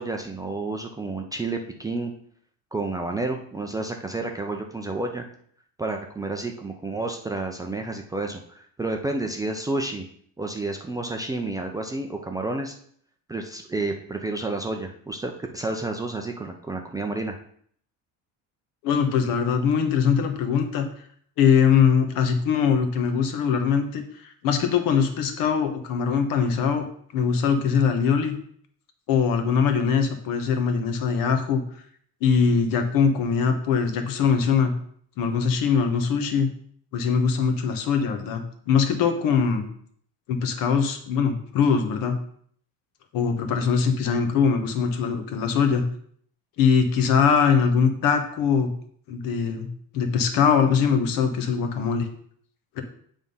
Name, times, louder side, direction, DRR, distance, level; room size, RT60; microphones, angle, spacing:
voice 1, 0.0-2.1 2.7-5.2 5.8-10.0 10.4-12.7 13.3-17.3, right 2 dB, 10° right, 2 dB, 0.4 m, -30 dB
voice 2, 18.8-20.8 21.4-26.8 27.1-28.4 29.1-31.6 32.2-34.7 35.2-36.5 36.9-39.7 40.3-42.2 43.1-45.8 46.6-48.7 49.1-49.7 49.9-52.1 52.8-52.9, left 6 dB, 65° left, 6 dB, 1.2 m, -22 dB
7.5 x 3.6 x 5.4 m, 0.62 s
cardioid pair, 155°, 36 cm